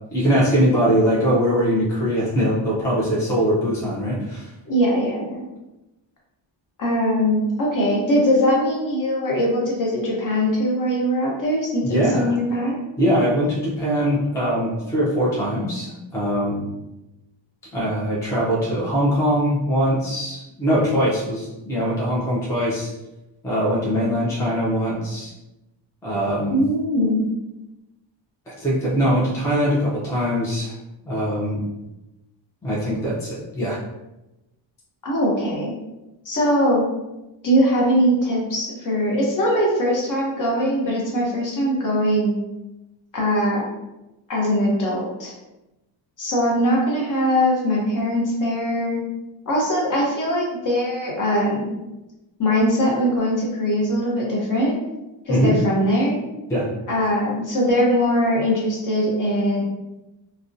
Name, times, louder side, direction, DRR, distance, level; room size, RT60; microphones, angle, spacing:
voice 1, 0.1-4.5 11.8-12.3 13.0-16.6 17.7-22.9 23.4-25.3 26.0-26.6 28.5-30.7 31.1-31.6 32.6-33.8 55.3-55.6 56.5-56.7, equal, 5° left, -7 dB, 0.4 m, -22 dB
voice 2, 4.7-5.4 6.8-12.8 26.5-27.2 35.0-35.7 36.3-36.8 37.4-42.3 43.1-43.6 44.3-45.3 46.2-49.1 49.5-51.8 52.4-54.8 55.3-56.2 56.9-59.6, equal, 45° left, -3 dB, 0.7 m, -21 dB
2.4 x 2.1 x 2.5 m, 0.98 s
wide cardioid pair, 175°, 46 cm